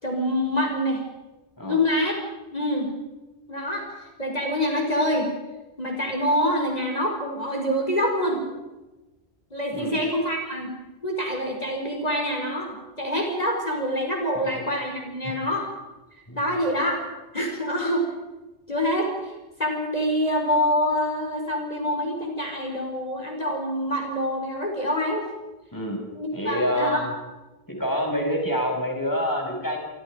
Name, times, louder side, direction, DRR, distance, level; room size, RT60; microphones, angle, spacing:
voice 1, 0.0-1.0 1.6-2.1 2.5-2.9 3.5-3.9 4.2-5.3 5.8-8.4 9.5-10.7 11.0-15.7 16.4-17.0 17.3-18.0 18.7-19.3 19.6-25.3 26.1-27.1, equal, 40° left, 1 dB, 4.8 m, -26 dB
voice 2, 26.3-27.1 27.7-29.8, equal, 20° left, 1 dB, 6.3 m, -27 dB
29.0 x 23.5 x 5.1 m, 1.1 s
omnidirectional pair, 1.1 m